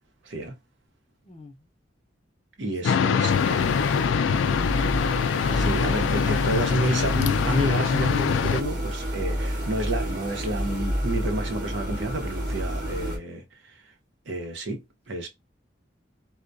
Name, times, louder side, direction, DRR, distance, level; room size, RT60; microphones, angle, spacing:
voice 1, 0.2-0.6 2.6-3.3 5.5-13.8 14.3-15.3, right 1 dB, 80° right, 0.8 m, -30 dB
voice 2, 1.2-1.6 2.6-3.6, left 3 dB, 30° left, 0.6 m, -42 dB
sound 1, 2.8-8.6, left 7 dB, 85° left, 0.3 m, -24 dB
sound 2, 3.3-13.2, equal, 45° right, 1.0 m, -30 dB
2.2 x 2.2 x 2.5 m
head